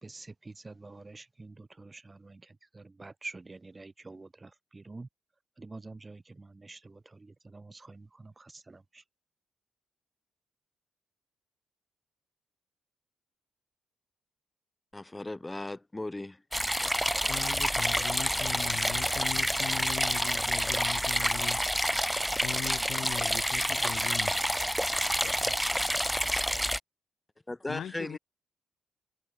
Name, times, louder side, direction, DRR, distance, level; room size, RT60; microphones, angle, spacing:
voice 1, 0.0-5.1 5.6-9.0, right 3 dB, 25° right, 1.7 m, -47 dB
voice 2, 14.9-16.4 27.5-28.2, left 2 dB, 15° left, 2.8 m, -37 dB
sound 1, 16.5-26.8, equal, ahead, 0.6 m, -28 dB
voice 3, 17.3-21.6 22.4-24.6 25.1-25.6 27.7-28.2, left 9 dB, 65° left, 1.3 m, -40 dB
supercardioid pair, 60°, 0 cm